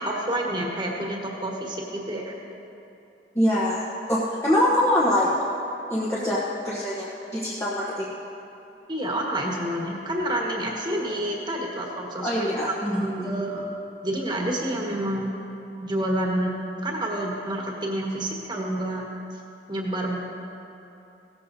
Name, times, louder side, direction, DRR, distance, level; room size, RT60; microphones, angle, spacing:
voice 1, 0.0-2.3 8.9-13.7 14.0-15.3 15.8-16.5 16.8-19.0 19.7-20.2, right 1 dB, 25° right, -1 dB, 1.4 m, -28 dB
voice 2, 3.3-5.3 5.9-8.1 12.2-13.5, left 1 dB, 15° left, -7 dB, 1.0 m, -24 dB
17.0 x 13.5 x 2.7 m, 2.8 s
head